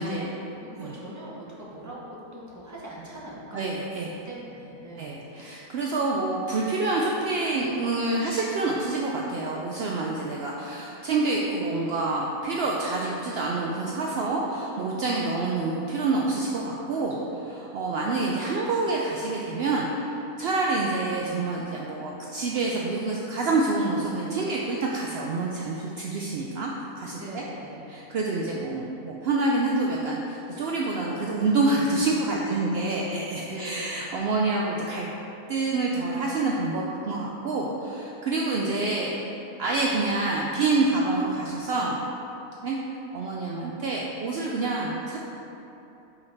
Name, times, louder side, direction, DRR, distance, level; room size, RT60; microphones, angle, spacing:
voice 1, 0.0-3.7 4.2-5.2 16.9-17.5 27.1-27.8 32.2-33.1 33.5-34.1, right 1 dB, 15° right, -6 dB, 0.8 m, -41 dB
voice 2, 3.5-4.1 5.0-17.2 17.6-20.1 20.4-26.7 27.0-27.4 27.9-35.1 35.5-39.3 39.6-42.0 42.6-42.8 43.1-45.2, right 3 dB, 75° right, -3 dB, 0.5 m, -27 dB
5.2 x 5.0 x 4.0 m, 3.0 s
omnidirectional pair, 1.6 m